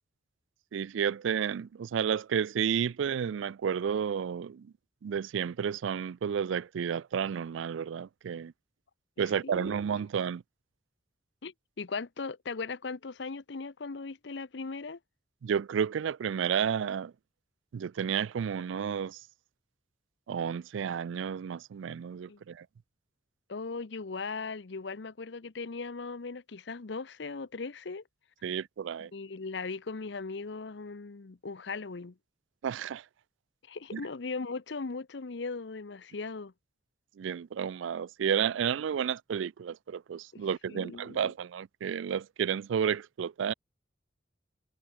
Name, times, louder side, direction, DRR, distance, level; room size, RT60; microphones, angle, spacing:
voice 1, 0.7-4.7 5.0-8.5 9.2-10.4 15.4-17.1 17.7-19.2 20.3-22.7 28.4-29.1 32.6-33.0 33.9-34.0 37.2-43.5, right 7 dB, 85° right, 0.4 m, -31 dB
voice 2, 9.2-9.8 11.4-15.0 22.3-22.4 23.5-28.0 29.0-32.2 33.7-36.5 40.3-41.3, left 4 dB, 70° left, 0.7 m, -38 dB
head